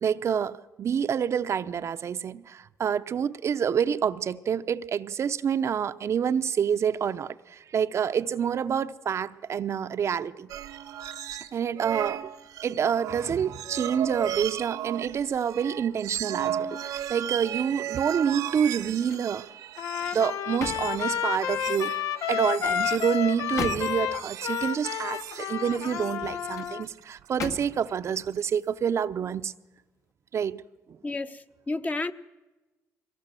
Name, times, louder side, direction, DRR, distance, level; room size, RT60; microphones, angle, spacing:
voice 1, 0.0-10.5 11.5-12.3 12.6-19.5 20.1-21.9 22.3-29.5 30.3-30.6, right 8 dB, 55° right, 0.6 m, -27 dB
sound 1, 10.5-11.5 11.8-28.5, right 11 dB, 85° right, 1.1 m, -36 dB
sound 2, 18.6-19.4 19.8-21.7 22.5-24.2 26.0-26.7 27.4-28.0 28.5-28.7, left 4 dB, 60° left, 1.8 m, -40 dB
Trumpet, 19.8-26.9, left 10 dB, 80° left, 0.7 m, -30 dB
voice 2, 31.0-32.1, left 2 dB, 25° left, 0.9 m, -31 dB
22.5 x 18.5 x 7.5 m
cardioid pair, 85°, 6 cm